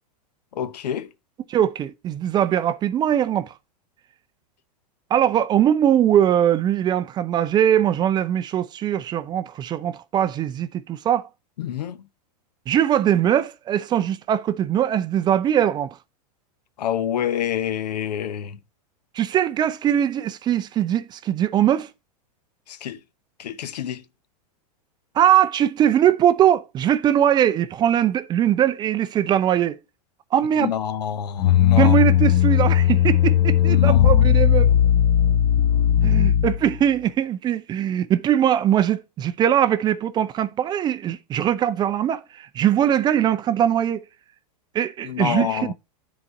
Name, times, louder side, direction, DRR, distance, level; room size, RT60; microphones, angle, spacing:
voice 1, 0.6-1.1 11.6-12.0 16.8-18.6 22.7-23.0 23.4-24.0 30.6-32.0 33.6-34.7 45.0-45.7, left 9 dB, 85° left, 0.8 m, -27 dB
voice 2, 1.5-3.5 5.1-11.3 12.7-16.0 19.1-21.9 25.1-29.8 30.3-30.7 31.8-34.7 36.0-44.0 44.7-45.7, right 10 dB, 20° right, 0.4 m, -21 dB
sound 1, 31.4-36.8, left 10 dB, 35° left, 1.0 m, -17 dB
9.7 x 4.1 x 4.4 m
hypercardioid pair, 130°, 20 cm